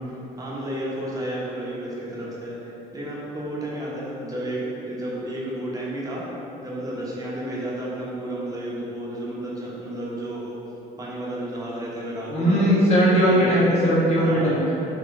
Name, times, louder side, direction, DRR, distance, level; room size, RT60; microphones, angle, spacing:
voice 1, 0.0-6.3 6.6-10.6 11.0-12.8 13.3-13.7 14.2-14.6, right 1 dB, 20° right, -6 dB, 1.0 m, -32 dB
voice 2, 12.3-14.8, equal, 40° left, -7 dB, 1.2 m, -19 dB
3.9 x 2.8 x 3.7 m, 2.9 s
cardioid pair, 110°, 17 cm